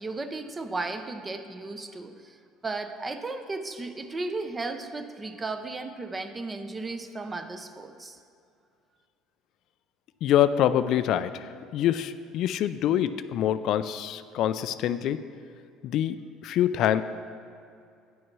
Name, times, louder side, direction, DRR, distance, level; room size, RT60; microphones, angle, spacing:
voice 1, 0.0-2.4 2.6-8.2, right 3 dB, 25° right, 8 dB, 0.7 m, -35 dB
voice 2, 10.2-15.2 15.8-16.2 16.4-17.0, left 11 dB, 60° left, 12 dB, 0.4 m, -25 dB
9.5 x 6.3 x 6.0 m, 2.5 s
supercardioid pair, 95°, 0 cm